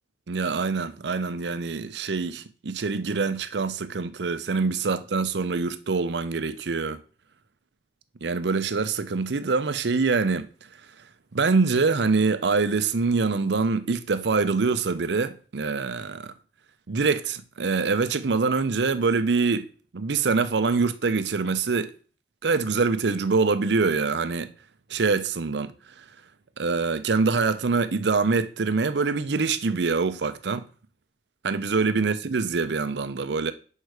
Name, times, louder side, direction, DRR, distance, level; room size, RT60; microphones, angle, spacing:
voice 1, 0.3-7.0 8.2-10.5 11.3-16.3 16.9-19.7 19.9-21.9 22.4-24.5 24.9-25.7 26.0-26.1 26.6-30.6 31.4-33.5, right 4 dB, 85° right, 0.6 m, -24 dB
5.5 x 4.8 x 6.4 m
head